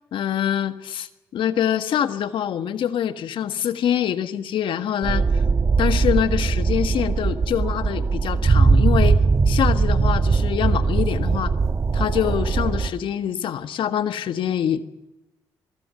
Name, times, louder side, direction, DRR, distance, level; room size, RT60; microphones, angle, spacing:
voice 1, 0.1-5.2 5.8-11.5 11.9-14.8, left 9 dB, 65° left, 10 dB, 1.5 m, -25 dB
sound 1, 5.0-12.9, right 4 dB, 35° right, 1.5 m, -20 dB
23.0 x 21.5 x 6.8 m, 1.0 s
hypercardioid pair, 55°, 9 cm